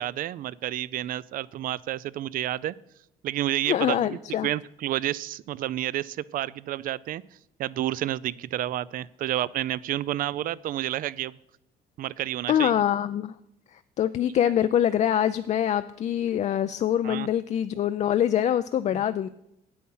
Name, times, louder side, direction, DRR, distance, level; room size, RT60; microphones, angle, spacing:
voice 1, 0.0-2.7 3.2-7.2 7.6-11.4 12.0-12.7 17.0-17.3 18.9-19.0, right 13 dB, 55° right, 20 dB, 0.4 m, -30 dB
voice 2, 3.7-4.5 12.5-13.3 13.7-19.3, left 10 dB, 45° left, 11 dB, 0.4 m, -24 dB
8.6 x 8.5 x 5.5 m, 0.80 s
cardioid pair, 110°, 17 cm